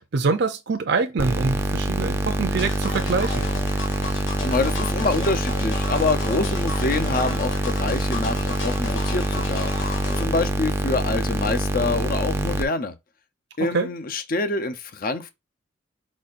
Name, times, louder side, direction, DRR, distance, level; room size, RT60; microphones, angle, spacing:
voice 1, 0.1-3.5 13.6-13.9, right 4 dB, 60° right, 0.6 m, -24 dB
sound 1, 1.2-12.6, right 1 dB, 15° right, 0.5 m, -25 dB
sound 2, 2.6-10.3, left 3 dB, 90° left, 1.5 m, -34 dB
voice 2, 4.4-13.0 13.6-15.3, left 3 dB, 45° left, 0.7 m, -26 dB
4.9 x 4.1 x 2.5 m
head